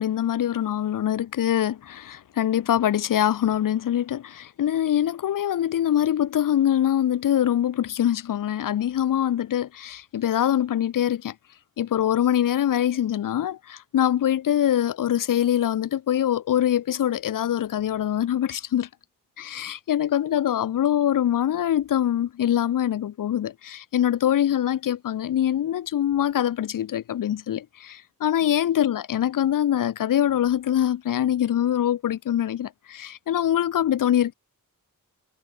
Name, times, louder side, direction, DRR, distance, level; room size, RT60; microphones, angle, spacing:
voice 1, 0.0-11.3 11.8-18.9 19.4-34.3, left 11 dB, 80° left, 0.6 m, -24 dB
wide cardioid pair, 120°, 32 cm